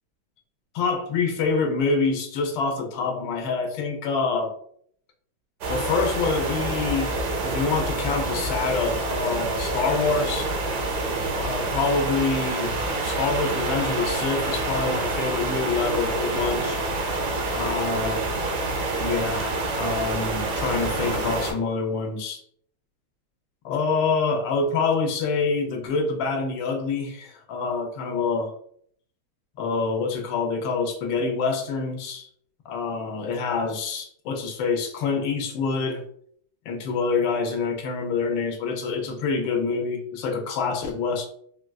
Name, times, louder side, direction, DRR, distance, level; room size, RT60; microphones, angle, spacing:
voice 1, 0.7-4.5 5.7-7.2 7.4-10.5 11.3-12.7 13.0-16.8 17.5-18.1 19.0-22.4 23.6-28.5 29.6-32.3 32.7-36.0 36.7-41.3, left 4 dB, 75° left, 3 dB, 1.3 m, -26 dB
sound 1, 5.6-21.5, right 2 dB, 65° right, 1.2 m, -27 dB
3.9 x 2.3 x 2.2 m, 0.63 s
omnidirectional pair, 2.2 m